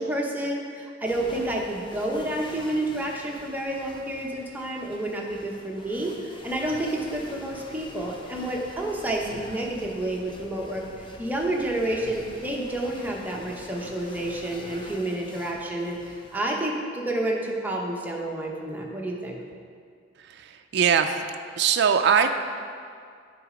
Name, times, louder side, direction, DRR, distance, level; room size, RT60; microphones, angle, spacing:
voice 1, 0.0-19.4, right 1 dB, 10° right, -1 dB, 0.9 m, -29 dB
sound 1, 1.0-16.4, left 1 dB, 25° left, 0.7 m, -45 dB
voice 2, 20.2-21.2 21.6-22.3, right 7 dB, 60° right, 6 dB, 0.4 m, -22 dB
10.5 x 4.1 x 5.0 m, 2.2 s
head